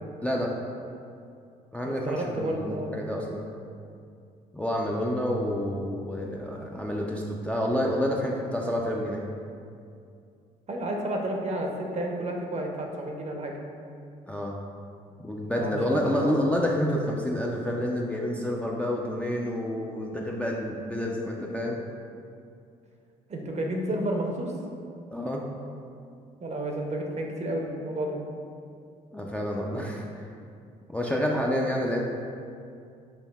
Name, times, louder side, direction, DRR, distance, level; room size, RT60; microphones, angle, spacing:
voice 1, 0.2-0.5 1.7-3.5 4.5-9.2 14.3-14.5 15.2-21.8 25.1-25.4 29.1-30.0 30.9-32.0, equal, 5° left, -2 dB, 0.4 m, -28 dB
voice 2, 1.8-2.9 10.7-13.6 15.6-16.3 23.3-24.5 26.4-28.2, right 1 dB, 35° right, 1 dB, 0.6 m, -31 dB
6.4 x 2.6 x 2.2 m, 2.4 s
hypercardioid pair, 50°, 20 cm